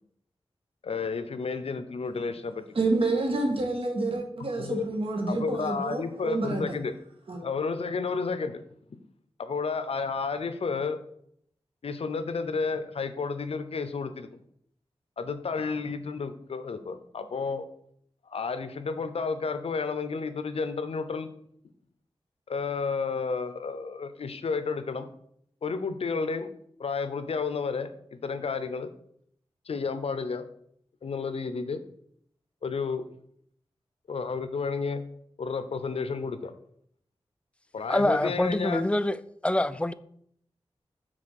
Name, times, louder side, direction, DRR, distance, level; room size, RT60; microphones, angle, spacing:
voice 1, 0.8-2.6 4.6-4.8 5.3-7.0 7.4-8.6 9.4-11.0 11.8-14.3 15.2-17.7 18.3-21.3 22.5-25.1 25.6-26.5 26.8-28.9 29.7-30.4 31.0-31.8 32.6-33.1 34.1-35.0 35.4-36.5 37.7-38.8, left 4 dB, 75° left, 0.7 m, -31 dB
voice 2, 2.7-6.8 7.3-7.4, right 2 dB, 60° right, 1.8 m, -28 dB
voice 3, 37.9-39.2 39.4-39.9, left 1 dB, 10° left, 0.3 m, -25 dB
6.2 x 4.2 x 6.4 m
wide cardioid pair, 85°, 10 cm